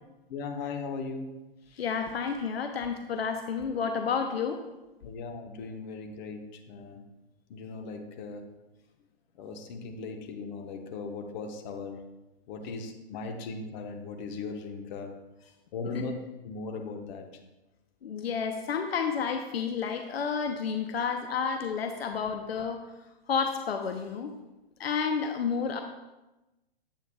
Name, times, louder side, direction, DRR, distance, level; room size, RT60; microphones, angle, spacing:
voice 1, 0.3-1.4 5.0-7.0 7.5-8.5 9.4-12.0 12.5-15.2 15.7-16.1 16.4-17.4 21.0-21.1, left 4 dB, 45° left, 4 dB, 1.1 m, -38 dB
voice 2, 1.7-4.6 15.9-16.0 18.0-22.8 23.3-24.3 24.8-25.8, left 6 dB, 80° left, 6 dB, 0.7 m, -30 dB
8.7 x 8.1 x 2.3 m, 1.0 s
hypercardioid pair, 120°, 30 cm